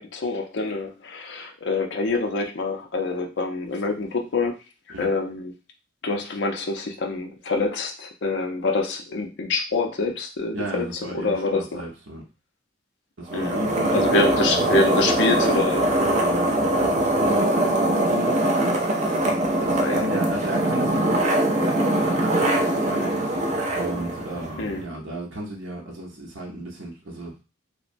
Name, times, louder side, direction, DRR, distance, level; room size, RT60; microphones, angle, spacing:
voice 1, 0.0-4.5 5.0-5.5 6.0-11.8 13.3-13.6 13.9-16.0 19.8-20.1 24.6-24.8, left 3 dB, 60° left, 3 dB, 0.4 m, -26 dB
voice 2, 10.5-12.2 13.2-14.4 16.1-23.5 23.7-27.4, right 1 dB, 75° right, -2 dB, 0.7 m, -34 dB
sound 1, 13.3-24.8, right 1 dB, 35° right, 0.4 m, -22 dB
2.9 x 2.1 x 2.5 m, 0.31 s
head